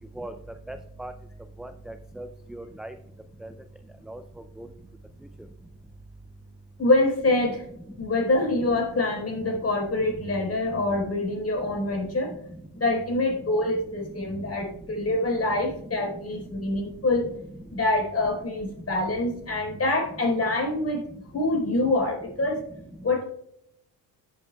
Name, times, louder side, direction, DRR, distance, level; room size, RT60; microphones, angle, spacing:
voice 1, 0.7-1.1 1.6-2.9 3.4-3.5 4.1-4.2 4.6-4.7, right 1 dB, ahead, 8 dB, 0.4 m, -39 dB
voice 2, 6.8-7.6 8.0-12.3 12.8-17.3 17.7-21.0 21.3-22.6 23.0-23.2, left 2 dB, 30° left, 1 dB, 4.1 m, -25 dB
15.5 x 7.9 x 2.3 m, 0.77 s
supercardioid pair, 80°, 45 cm